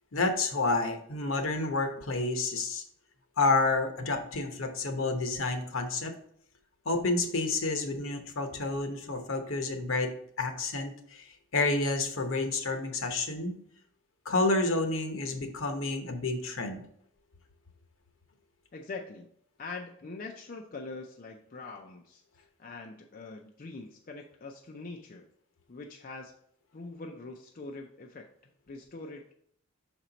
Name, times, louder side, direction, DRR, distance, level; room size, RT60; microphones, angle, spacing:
voice 1, 0.1-2.8 3.4-6.1 6.8-11.3 11.5-13.6 14.2-16.8, left 3 dB, 70° left, 6 dB, 0.9 m, -29 dB
voice 2, 18.7-19.3 19.6-25.3 25.7-26.3 26.7-29.3, left 3 dB, 40° left, 2 dB, 0.4 m, -43 dB
5.9 x 4.4 x 3.9 m, 0.66 s
head